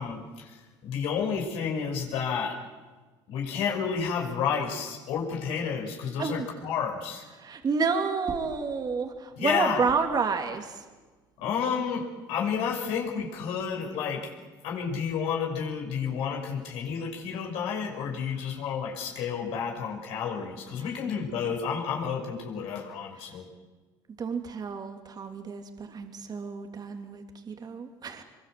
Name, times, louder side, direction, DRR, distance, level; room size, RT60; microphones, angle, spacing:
voice 1, 0.0-2.6 3.3-7.3 9.4-9.9 11.4-14.3 14.6-23.5, left 6 dB, 75° left, 1 dB, 5.7 m, -31 dB
voice 2, 7.4-10.8 24.2-28.2, right 5 dB, 40° right, 6 dB, 3.0 m, -30 dB
24.0 x 23.0 x 7.7 m, 1.3 s
supercardioid pair, 75°, 10 cm